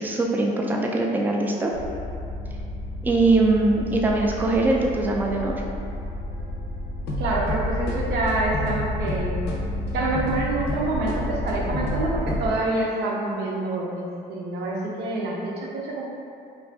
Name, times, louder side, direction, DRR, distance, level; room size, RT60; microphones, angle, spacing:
voice 1, 0.0-1.7 3.0-5.6, right 2 dB, 10° right, -1 dB, 0.3 m, -22 dB
sound 1, 1.7-12.5, left 1 dB, 80° left, 0.5 m, -30 dB
voice 2, 7.2-9.4 9.9-16.0, right 2 dB, 75° right, -3 dB, 0.6 m, -27 dB
2.6 x 2.4 x 3.2 m, 2.5 s
cardioid pair, 110°, 17 cm